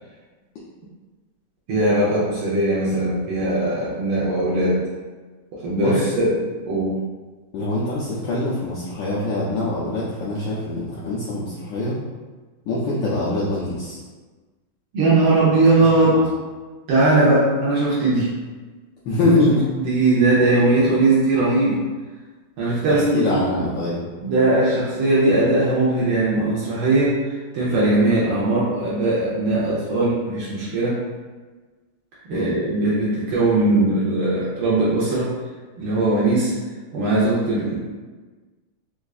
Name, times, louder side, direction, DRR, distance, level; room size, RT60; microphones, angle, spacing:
voice 1, 1.7-4.8 5.5-6.4 6.6-7.0 14.9-16.3 16.9-18.3 19.2-19.4 19.8-21.8 22.6-23.3 23.5-23.6 24.2-31.0 32.3-35.3 35.8-36.5 36.9-37.8, right 2 dB, 80° right, -8 dB, 1.7 m, -19 dB
voice 2, 5.7-6.1 7.5-12.0 12.7-14.0 19.0-19.6 22.9-24.0 32.3-32.6, left 2 dB, 70° left, -7 dB, 1.2 m, -23 dB
4.4 x 2.4 x 2.3 m, 1.3 s
omnidirectional pair, 2.3 m